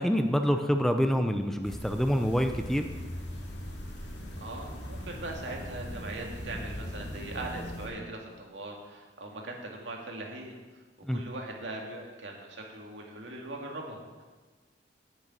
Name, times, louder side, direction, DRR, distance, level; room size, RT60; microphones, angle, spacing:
voice 1, 0.0-2.9 11.0-11.2, equal, ahead, 6 dB, 0.6 m, -26 dB
sound 1, 1.6-7.9, equal, 75° left, 2.3 m, -40 dB
voice 2, 4.4-10.5 11.1-14.2, right 2 dB, 85° right, 0 dB, 2.3 m, -40 dB
10.0 x 6.9 x 9.0 m, 1.3 s
head